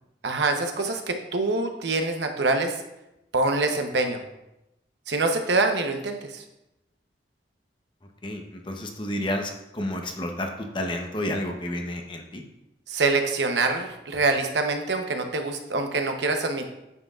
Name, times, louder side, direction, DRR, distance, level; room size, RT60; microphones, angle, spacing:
voice 1, 0.2-2.7 3.3-4.2 5.1-6.4 12.9-16.7, right 3 dB, 75° right, 5 dB, 0.9 m, -25 dB
voice 2, 8.2-12.4, left 1 dB, 25° left, 3 dB, 0.8 m, -31 dB
9.2 x 7.7 x 2.4 m, 0.92 s
head